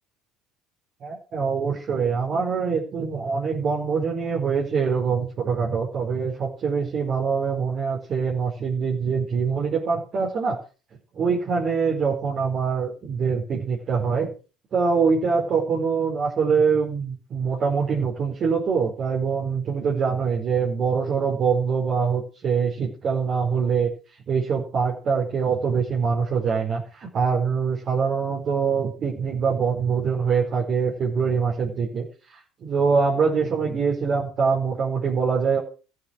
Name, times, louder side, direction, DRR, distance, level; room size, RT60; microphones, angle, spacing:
voice 1, 1.0-10.6 11.1-14.3 14.7-23.9 24.3-32.1 32.6-35.6, right 5 dB, 45° right, -3 dB, 4.8 m, -24 dB
15.0 x 8.5 x 7.5 m, 0.36 s
hypercardioid pair, 70°, 0 cm